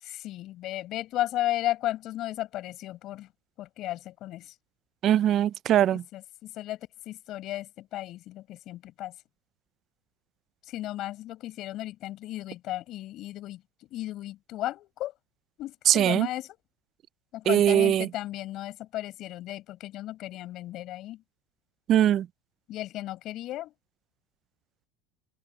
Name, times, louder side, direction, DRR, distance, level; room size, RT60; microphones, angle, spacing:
voice 1, 0.0-3.3 3.6-4.5 6.1-9.1 10.6-13.6 13.9-15.1 15.6-16.6 17.3-21.2 22.7-23.7, left 15 dB, 35° left, 7.7 m, -35 dB
voice 2, 5.0-6.0 15.9-16.3 17.5-18.1 21.9-22.3, right 11 dB, 30° right, 0.4 m, -21 dB
open air
supercardioid pair, 165°, 0 cm